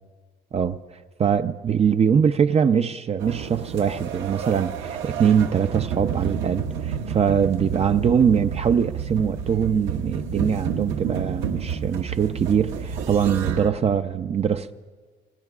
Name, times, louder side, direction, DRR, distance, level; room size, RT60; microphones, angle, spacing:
voice 1, 1.2-14.7, right 7 dB, 35° right, 0.5 m, -22 dB
sound 1, 3.2-13.7, right 7 dB, 90° right, 1.1 m, -30 dB
27.0 x 20.0 x 2.4 m
cardioid pair, 105°, 19 cm